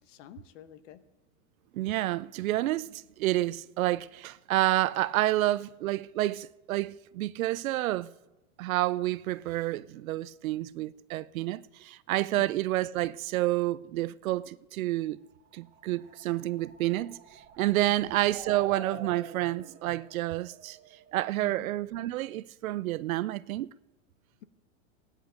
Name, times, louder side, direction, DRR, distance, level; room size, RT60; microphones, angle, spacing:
voice 1, 0.0-1.0 12.4-12.5 17.9-18.1 18.9-19.0 19.4-19.5 21.4-21.7, left 11 dB, 65° left, 1.1 m, -50 dB
voice 2, 1.7-8.1 8.6-15.2 15.5-20.8 21.1-23.7, right 16 dB, 85° right, 0.6 m, -29 dB
sound 1, 15.5-21.3, right 6 dB, 25° right, 1.7 m, -47 dB
17.5 x 9.9 x 5.1 m
supercardioid pair, 150°, 40 cm